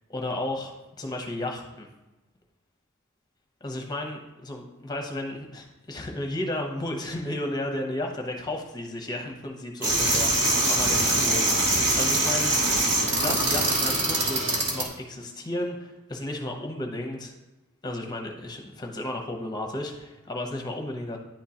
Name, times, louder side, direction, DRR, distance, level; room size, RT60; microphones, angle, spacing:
voice 1, 0.1-1.9 3.6-12.5 13.2-17.3 17.8-21.2, left 1 dB, 20° left, 2 dB, 0.8 m, -33 dB
sound 1, 9.8-14.9, right 2 dB, 60° right, 1.5 m, -23 dB
10.0 x 3.7 x 2.8 m, 1.1 s
head